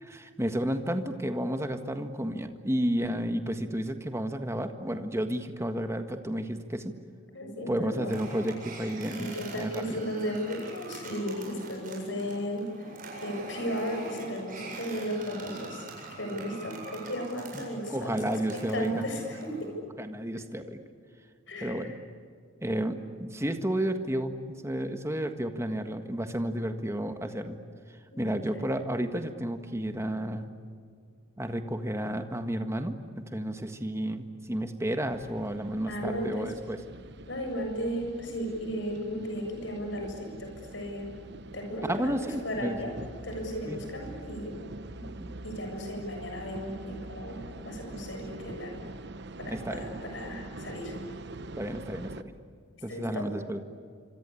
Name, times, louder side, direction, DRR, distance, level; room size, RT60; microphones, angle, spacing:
voice 1, 0.0-6.9 7.7-10.0 17.5-19.0 20.0-20.8 21.6-21.9 22.6-24.3 24.6-27.6 28.2-30.5 31.4-36.8 41.8-42.8 43.7-43.8 45.0-45.3 49.5-49.9 51.6-52.1 52.8-53.6, right 1 dB, 15° right, 7 dB, 1.7 m, -32 dB
voice 2, 7.3-8.2 9.2-12.9 13.2-15.9 16.2-19.7 21.5-21.9 28.1-28.6 35.9-36.5 37.3-41.1 41.5-42.9 43.2-44.6 45.4-48.8 49.4-50.9 52.9-53.3, equal, 65° left, 3 dB, 7.2 m, -35 dB
sound 1, 8.1-19.7, right 2 dB, 45° right, 7.9 m, -44 dB
sound 2, 35.1-52.2, right 2 dB, 60° right, 1.0 m, -44 dB
27.0 x 26.0 x 8.5 m, 2.1 s
head